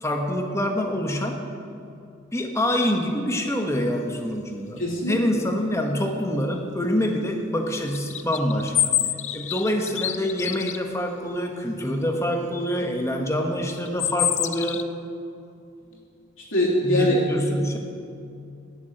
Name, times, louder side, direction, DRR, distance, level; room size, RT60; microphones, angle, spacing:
voice 1, 0.0-1.4 2.3-9.0 9.3-14.8 16.8-17.8, equal, 15° left, 3 dB, 1.2 m, -26 dB
voice 2, 4.8-5.2 16.5-17.2, left 1 dB, 70° left, -4 dB, 3.1 m, -22 dB
sound 1, 7.9-10.8 13.8-14.8, left 11 dB, 35° left, 0.4 m, -26 dB
11.5 x 7.1 x 9.1 m, 2.5 s
head